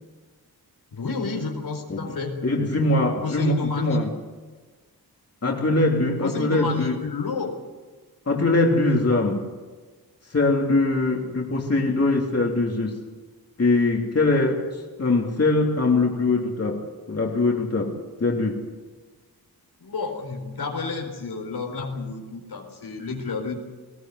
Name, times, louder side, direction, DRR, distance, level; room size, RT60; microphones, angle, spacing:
voice 1, 0.9-2.4 3.2-4.0 6.2-7.5 19.8-23.6, left 4 dB, 85° left, 3 dB, 4.4 m, -30 dB
voice 2, 2.4-4.1 5.4-7.0 8.3-9.5 10.3-13.0 13.6-18.6, left 2 dB, 40° left, 0 dB, 3.1 m, -22 dB
20.0 x 17.5 x 7.9 m, 1.3 s
wide cardioid pair, 95°, 38 cm